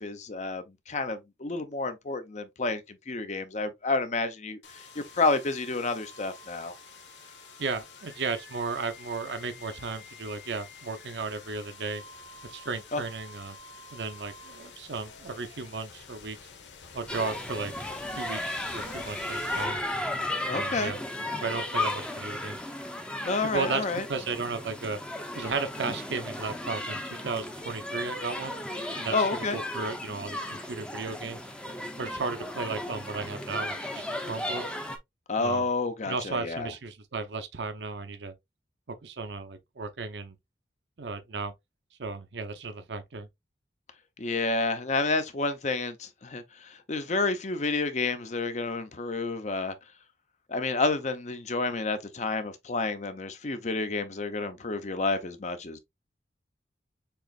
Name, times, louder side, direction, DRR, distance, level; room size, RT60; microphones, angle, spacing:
voice 1, 0.0-4.6 5.0-6.7 12.9-13.0 20.5-20.9 23.2-24.0 29.1-29.6 35.3-36.7 44.2-49.7 50.5-55.8, left 3 dB, 40° left, 0.7 m, -30 dB
sound 1, 4.6-20.5, left 4 dB, 85° left, 1.1 m, -49 dB
voice 2, 7.6-12.0 12.4-13.6 13.9-16.4 16.9-17.7 18.1-19.8 20.5-21.0 21.4-22.6 23.4-25.0 25.3-28.6 29.0-31.4 32.0-34.6 35.4-35.7 36.1-38.3 38.9-40.4 41.0-41.5 42.0-43.3, right 4 dB, 75° right, 0.8 m, -35 dB
sound 2, 17.1-35.0, left 1 dB, 5° left, 0.6 m, -35 dB
6.8 x 3.0 x 2.4 m
head